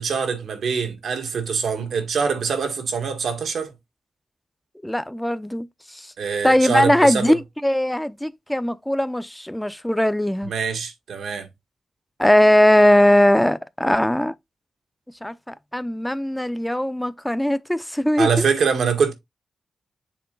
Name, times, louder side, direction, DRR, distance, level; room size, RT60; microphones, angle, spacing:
voice 1, 0.0-3.7 6.2-7.4 10.5-11.5 18.2-19.1, right 6 dB, 80° right, 1.7 m, -24 dB
voice 2, 4.8-6.1 6.4-10.5 12.2-14.3 15.2-18.4, left 1 dB, 5° left, 0.6 m, -19 dB
7.0 x 3.6 x 3.9 m
cardioid pair, 60°, 0 cm